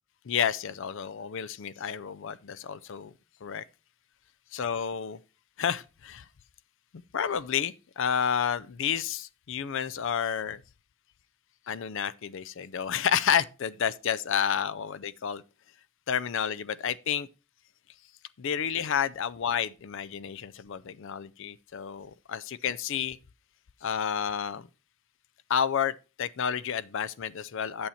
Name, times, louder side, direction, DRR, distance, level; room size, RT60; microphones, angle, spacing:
voice 1, 0.3-3.1 3.4-3.6 4.5-5.2 5.6-6.2 7.1-10.6 11.7-15.4 16.1-17.3 18.4-23.2 23.8-24.7 25.5-27.9, left 8 dB, 55° left, 0.4 m, -30 dB
8.5 x 7.0 x 4.2 m
head